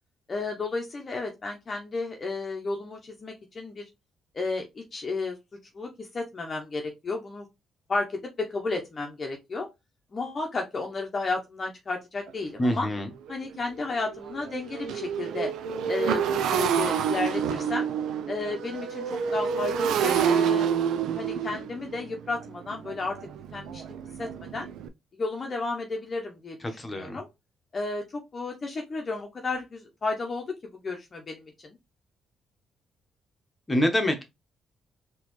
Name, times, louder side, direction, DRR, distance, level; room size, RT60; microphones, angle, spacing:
voice 1, 0.3-3.8 4.3-5.4 5.7-7.5 7.9-8.1 8.4-9.7 10.1-12.9 13.3-15.5 15.9-17.9 18.3-20.7 21.2-23.2 23.5-23.8 24.2-24.7 25.2-26.6 26.9-27.3 27.7-30.6 30.8-31.7, left 3 dB, 35° left, 0.8 m, -32 dB
Motorcycle, 12.3-12.4 12.8-13.0 13.3-24.9, right 8 dB, 80° right, 0.4 m, -28 dB
voice 2, 12.6-13.1 26.6-27.2 33.7-34.2, left 1 dB, 20° left, 1.1 m, -26 dB
4.1 x 2.9 x 3.1 m
cardioid pair, 90°, 0 cm